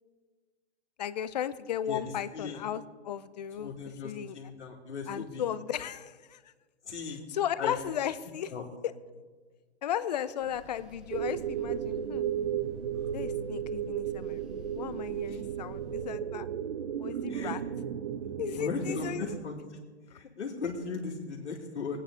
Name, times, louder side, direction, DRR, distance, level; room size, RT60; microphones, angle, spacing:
voice 1, 1.0-4.4 5.1-6.5 7.1-8.5 8.8-8.9 9.8-12.3 13.1-14.4 14.7-16.5 17.0-17.6 18.4-19.4 20.1-20.2, left 10 dB, 40° left, 14 dB, 0.6 m, -35 dB
voice 2, 2.3-2.6 3.6-5.4 6.9-7.2 7.6-7.7 8.5-8.6 17.3-17.6 18.6-19.5 20.1-22.0, left 4 dB, 75° left, -5 dB, 2.2 m, -37 dB
sound 1, 10.4-16.1, right 2 dB, ahead, 0.7 m, -53 dB
sound 2, 11.1-19.4, right 9 dB, 45° right, 0.5 m, -34 dB
18.5 x 9.1 x 3.7 m, 1.4 s
hypercardioid pair, 150°, 34 cm